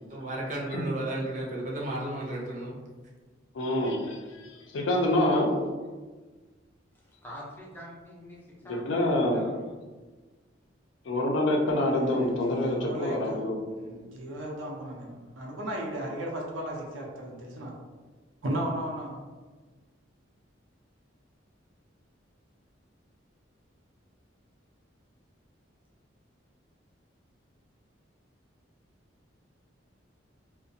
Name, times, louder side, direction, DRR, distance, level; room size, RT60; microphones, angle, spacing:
voice 1, 0.1-2.8, right 1 dB, 40° right, -3 dB, 0.5 m, -33 dB
voice 2, 3.5-5.6 8.6-9.5 11.1-13.6, left 1 dB, 75° left, 0 dB, 0.5 m, -26 dB
voice 3, 7.2-9.7, left 1 dB, 10° left, -4 dB, 0.4 m, -46 dB
voice 4, 11.8-13.4 13.8-17.7 18.4-19.2, right 1 dB, 85° right, -2 dB, 0.6 m, -35 dB
2.4 x 2.1 x 2.6 m, 1.3 s
head